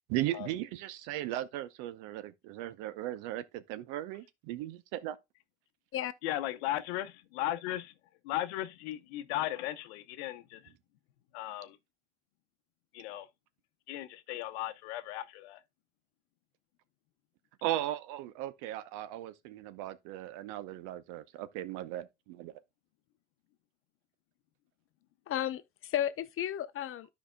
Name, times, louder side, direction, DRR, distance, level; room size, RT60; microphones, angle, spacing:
voice 1, 0.1-5.2 17.6-22.5, right 14 dB, 60° right, 0.8 m, -37 dB
voice 2, 6.2-7.9 8.2-10.6 11.3-11.8 12.9-13.3 13.9-15.6, left 14 dB, 70° left, 0.9 m, -36 dB
voice 3, 25.3-27.1, left 11 dB, 40° left, 0.8 m, -33 dB
13.0 x 5.0 x 2.2 m
hypercardioid pair, 70°, 34 cm